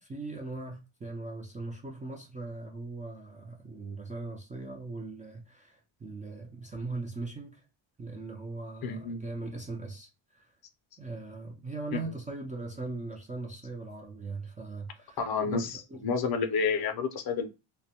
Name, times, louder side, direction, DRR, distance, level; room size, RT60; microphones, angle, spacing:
voice 1, 0.0-7.6 8.0-10.5 11.0-15.2 15.5-16.1, right 3 dB, 20° right, 0.3 m, -40 dB
voice 2, 8.8-9.2 11.9-12.1 15.2-17.5, left 5 dB, 50° left, 0.6 m, -30 dB
2.1 x 2.1 x 2.8 m
cardioid pair, 90°, 49 cm